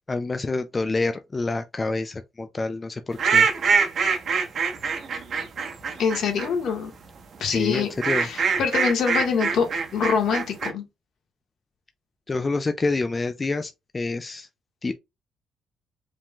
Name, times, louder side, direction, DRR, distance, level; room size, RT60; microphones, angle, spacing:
voice 1, 0.1-3.5 7.5-8.3 12.3-14.5 14.8-14.9, left 3 dB, 25° left, 0.4 m, -27 dB
sound 1, 3.2-6.5 7.7-10.7, right 5 dB, 55° right, 1.3 m, -23 dB
voice 2, 6.0-6.9 7.4-10.8, left 6 dB, 70° left, 1.7 m, -25 dB
4.9 x 3.6 x 2.4 m
cardioid pair, 90°, 0 cm